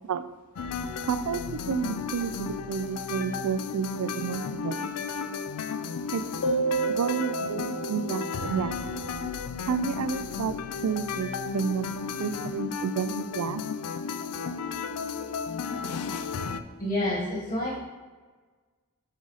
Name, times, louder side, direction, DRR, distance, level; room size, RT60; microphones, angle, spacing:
sound 1, 0.6-16.6, left 5 dB, 85° left, 0.4 m, -34 dB
voice 1, 1.0-4.9 6.1-6.2 7.0-9.0 9.7-10.6 10.8-13.6, right 6 dB, 90° right, 13 dB, 0.4 m, -31 dB
sound 2, 6.4-9.7, right 4 dB, 65° left, 1.0 m, -32 dB
voice 2, 16.8-17.8, left 1 dB, 40° left, -6 dB, 1.7 m, -28 dB
7.9 x 3.8 x 4.0 m, 1.4 s
head